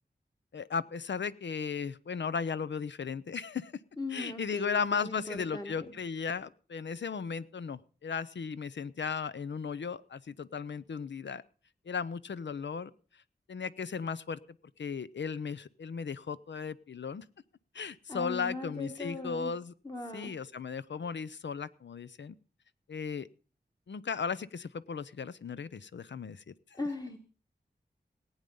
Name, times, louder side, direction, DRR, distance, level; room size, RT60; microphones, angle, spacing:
voice 1, 0.5-3.7 4.1-11.4 11.9-12.9 13.5-14.4 14.8-17.2 17.7-19.7 20.1-22.4 22.9-23.3 23.9-26.8, left 6 dB, 90° left, 16 dB, 0.6 m, -36 dB
voice 2, 4.0-5.7 18.1-19.5 19.8-20.3 26.7-27.2, left 2 dB, 20° left, 4 dB, 1.4 m, -39 dB
18.5 x 9.0 x 5.4 m, 0.40 s
wide cardioid pair, 65°, 18 cm